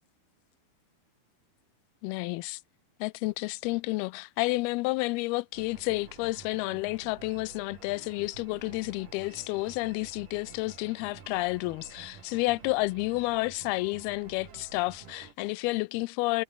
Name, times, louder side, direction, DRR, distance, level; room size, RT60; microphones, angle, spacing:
voice 1, 2.0-2.6 3.0-16.4, left 23 dB, 85° left, 2.5 m, -30 dB
sound 1, 5.5-15.3, right 7 dB, 60° right, 4.9 m, -50 dB
omnidirectional pair, 4.4 m